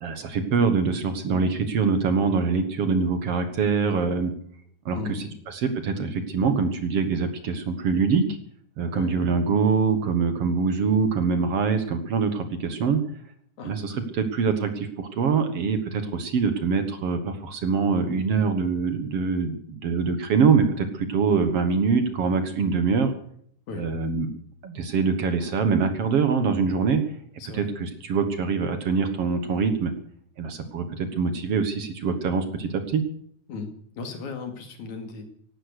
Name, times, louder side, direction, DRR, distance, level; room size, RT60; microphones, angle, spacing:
voice 1, 0.0-4.3 4.9-8.4 8.8-13.0 13.6-23.1 23.8-24.3 24.6-27.0 27.5-29.9 30.4-33.0, right 5 dB, 55° right, 9 dB, 2.1 m, -24 dB
voice 2, 4.9-5.4 8.9-9.2 13.6-13.8 23.7-23.9 27.4-27.7 33.5-35.2, left 4 dB, 70° left, 5 dB, 3.7 m, -36 dB
16.0 x 12.0 x 6.6 m, 0.63 s
omnidirectional pair, 3.5 m